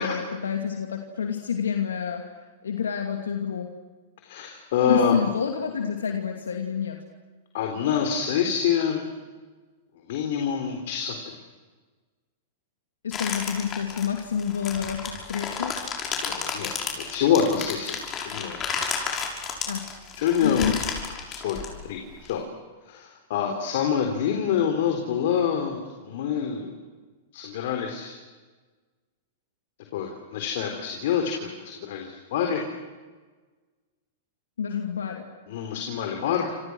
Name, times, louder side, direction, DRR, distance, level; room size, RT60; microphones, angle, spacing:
voice 1, 0.0-2.2 2.6-3.7 4.9-7.0 13.0-15.8 19.7-19.9 20.4-20.8 34.6-35.3, left 7 dB, 85° left, 3 dB, 2.6 m, -28 dB
voice 2, 4.2-5.2 7.5-9.1 10.0-11.4 16.2-18.0 18.2-18.6 20.2-20.7 21.3-22.4 22.8-26.8 27.3-28.1 29.9-32.6 35.5-36.6, left 7 dB, 65° left, 3 dB, 3.9 m, -26 dB
sound 1, 13.1-22.3, left 6 dB, 30° left, 6.3 m, -32 dB
29.5 x 27.5 x 6.4 m, 1.3 s
hypercardioid pair, 110°, 0 cm